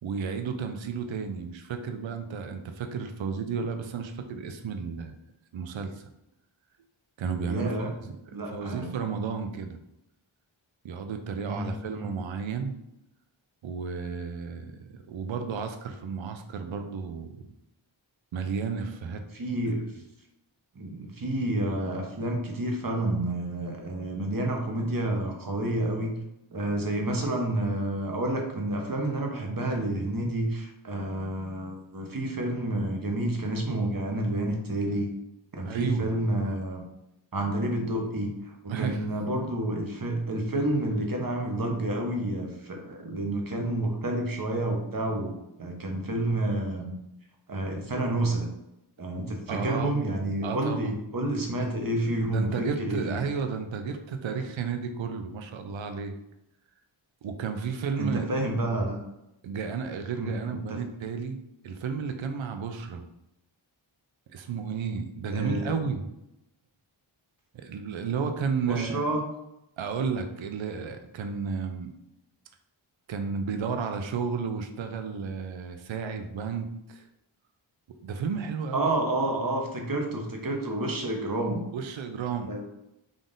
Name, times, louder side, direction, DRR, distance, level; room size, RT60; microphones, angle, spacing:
voice 1, 0.0-5.2 5.5-6.1 7.2-8.2 8.5-9.8 10.8-12.7 13.6-17.4 18.3-19.2 35.6-36.1 38.7-39.1 49.5-50.0 50.4-51.0 52.3-56.1 57.2-58.3 59.4-61.4 61.6-63.0 64.3-66.1 67.5-69.0 69.8-71.9 73.1-77.1 78.0-78.9 81.7-82.5, right 5 dB, 70° right, 6 dB, 0.5 m, -32 dB
voice 2, 7.5-7.9 8.3-8.9 11.4-12.1 19.3-19.8 20.7-26.1 26.5-35.1 35.6-36.8 37.3-46.9 47.5-48.5 49.0-53.2 58.0-59.0 60.2-60.3 65.3-65.7 68.7-69.2 78.7-81.6 82.5-82.6, right 1 dB, 45° right, 2 dB, 0.9 m, -29 dB
3.7 x 2.5 x 3.7 m, 0.88 s
wide cardioid pair, 40°, 49 cm